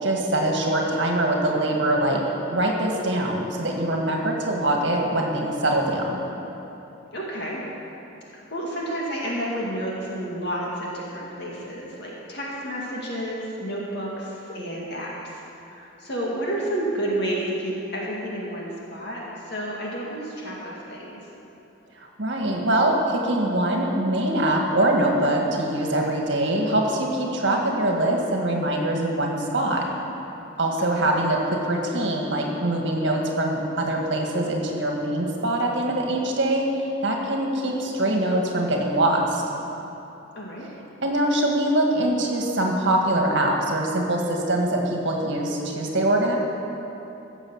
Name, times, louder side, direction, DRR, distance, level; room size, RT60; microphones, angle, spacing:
voice 1, 0.0-2.2 2.5-6.2 22.0-29.8 30.6-39.4 41.0-46.4, right 1 dB, 60° right, 0 dB, 1.8 m, -23 dB
voice 2, 7.1-7.6 8.3-21.2 30.8-31.1 40.4-40.7, right 1 dB, 55° left, -4 dB, 2.2 m, -31 dB
15.5 x 7.2 x 7.2 m, 2.9 s
head